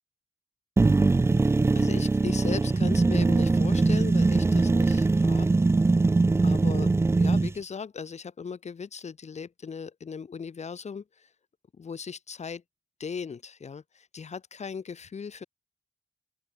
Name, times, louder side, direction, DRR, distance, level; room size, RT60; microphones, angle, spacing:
sound 1, 0.8-7.5, right 3 dB, 20° right, 0.4 m, -22 dB
voice 1, 1.8-5.5 6.4-11.3 11.8-12.6 13.0-15.4, left 6 dB, 65° left, 3.5 m, -38 dB
open air
wide cardioid pair, 105°, 12 cm